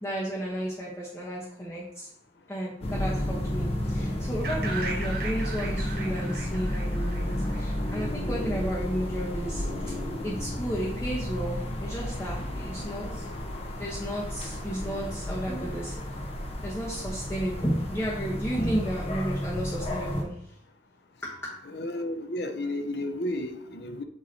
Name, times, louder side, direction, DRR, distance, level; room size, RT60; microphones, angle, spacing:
voice 1, 0.0-2.1 2.5-9.6 10.2-16.2 16.6-20.5 21.2-21.4, equal, 15° left, -7 dB, 1.0 m, -33 dB
sound 1, 2.8-20.2, left 1 dB, 35° left, 0.8 m, -32 dB
sound 2, 4.4-8.3, right 3 dB, 55° right, 0.8 m, -38 dB
voice 2, 21.7-24.0, left 1 dB, 65° left, 8 dB, 0.6 m, -32 dB
7.6 x 3.0 x 4.2 m, 0.72 s
head